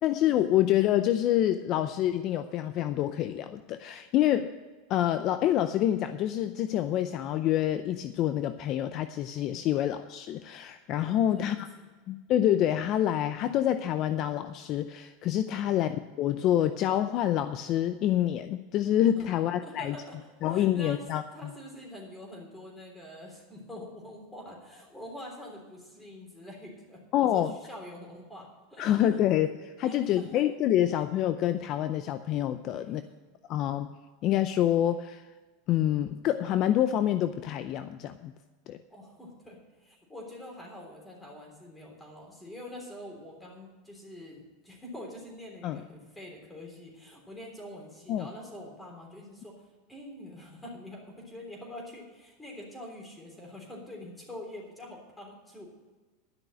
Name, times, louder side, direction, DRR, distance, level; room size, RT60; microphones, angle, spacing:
voice 1, 0.0-4.5 4.9-11.7 12.1-20.0 20.4-21.5 27.1-27.6 28.8-33.0 33.5-33.9 34.2-35.3 35.7-38.3 38.7-38.8 45.6-45.8 48.1-48.3, left 11 dB, 45° left, 10 dB, 0.5 m, -27 dB
voice 2, 11.0-11.9 15.5-15.7 19.2-19.3 19.6-20.2 20.5-21.0 21.3-29.0 29.8-30.3 32.7-33.1 38.9-49.5 49.9-55.7, left 1 dB, 10° left, 0 dB, 3.5 m, -45 dB
12.0 x 6.2 x 8.9 m, 1.3 s
supercardioid pair, 140°, 0 cm